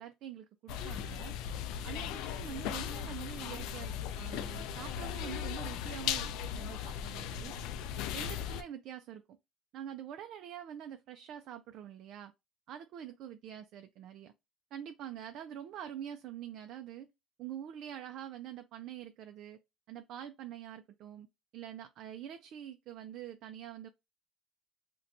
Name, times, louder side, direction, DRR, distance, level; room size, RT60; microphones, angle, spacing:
voice 1, 0.0-1.4 1.8-7.5 8.1-9.2 9.7-12.3 12.7-14.3 14.7-17.1 17.4-19.6 19.9-21.3 21.5-23.9, right 10 dB, 60° right, 0.3 m, -45 dB
sound 1, 0.7-8.6, left 9 dB, 80° left, 0.3 m, -38 dB
2.6 x 2.2 x 4.0 m
cardioid pair, 150°, 0 cm